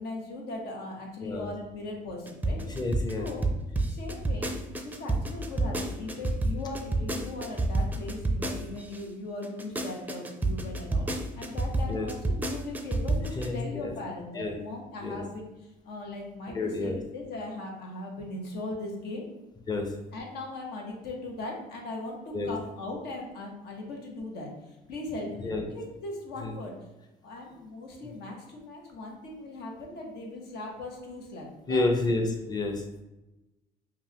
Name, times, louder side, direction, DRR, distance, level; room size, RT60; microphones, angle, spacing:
voice 1, 0.0-2.7 3.2-3.5 3.7-19.3 20.1-26.7 27.2-31.8, left 2 dB, 75° left, 0 dB, 1.1 m, -39 dB
sound 1, 2.3-9.0 9.4-13.5, right 2 dB, 10° right, 0.5 m, -28 dB
voice 2, 2.7-3.3 11.9-12.1 13.3-13.9 14.3-14.5 15.0-15.2 16.5-17.0 19.7-19.9 22.3-22.5 25.4-25.6 26.4-26.5 31.7-32.8, left 2 dB, 25° left, 3 dB, 0.7 m, -29 dB
5.3 x 2.5 x 2.9 m, 1.0 s
cardioid pair, 110°, 17 cm